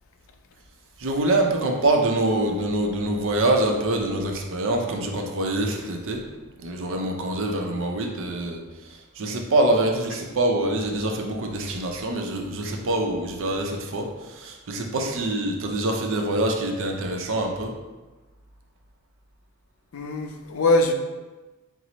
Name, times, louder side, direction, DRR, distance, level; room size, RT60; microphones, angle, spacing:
voice 1, 1.0-6.2 6.6-8.6 9.2-14.1 14.4-17.7, right 1 dB, 60° right, 0.6 m, -25 dB
voice 2, 19.9-20.9, left 2 dB, 65° left, 0.4 m, -22 dB
4.5 x 2.0 x 3.9 m
head